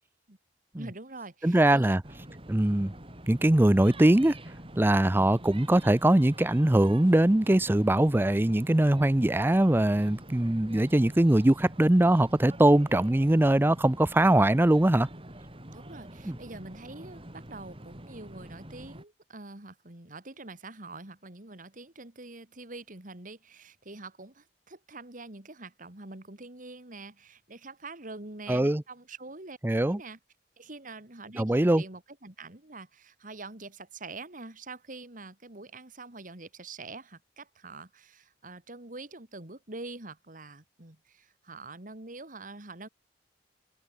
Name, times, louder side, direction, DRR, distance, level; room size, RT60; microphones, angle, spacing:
voice 1, 0.7-2.0 15.7-29.6 29.8-30.2 30.6-42.9, right 3 dB, 50° right, 2.8 m, -45 dB
voice 2, 1.4-2.0 2.5-2.9 3.3-4.3 4.8-15.1 16.3-16.4 28.5-28.8 29.6-30.0 31.4-31.8, right 1 dB, 15° right, 0.5 m, -22 dB
sound 1, 2.0-19.0, right 1 dB, 30° right, 6.3 m, -46 dB
head